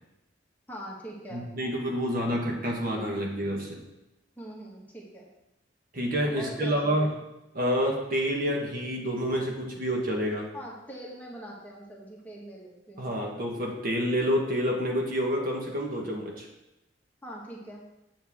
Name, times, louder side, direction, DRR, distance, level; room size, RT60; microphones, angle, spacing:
voice 1, 0.7-1.4 4.4-5.3 6.3-7.2 10.5-13.1 17.2-17.8, equal, 10° left, -4 dB, 1.4 m, -42 dB
voice 2, 1.3-3.8 5.9-7.1 7.5-10.5 13.0-16.5, equal, 50° right, 0 dB, 1.3 m, -28 dB
7.8 x 7.2 x 3.6 m, 0.92 s
head